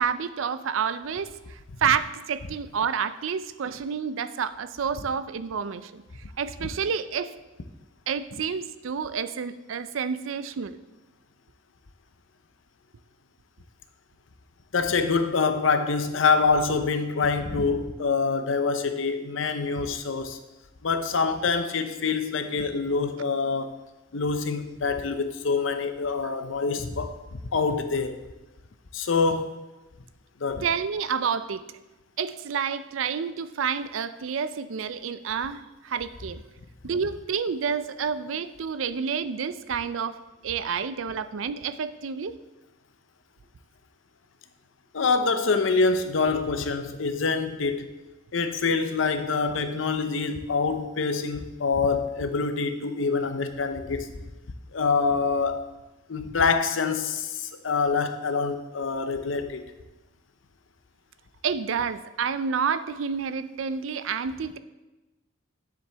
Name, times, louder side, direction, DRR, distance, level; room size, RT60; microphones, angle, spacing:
voice 1, 0.0-6.0 6.4-7.4 8.1-10.8 26.2-26.3 30.6-31.6 32.2-36.4 36.8-42.3 61.4-64.6, right 6 dB, 80° right, 13 dB, 0.5 m, -29 dB
voice 2, 14.7-20.4 20.8-23.8 24.1-27.2 27.5-28.2 28.9-29.5 30.4-30.6 44.9-47.9 48.3-54.1 54.7-55.6 56.1-59.6, left 4 dB, 70° left, 8 dB, 0.7 m, -25 dB
9.6 x 7.6 x 3.4 m, 1.1 s
head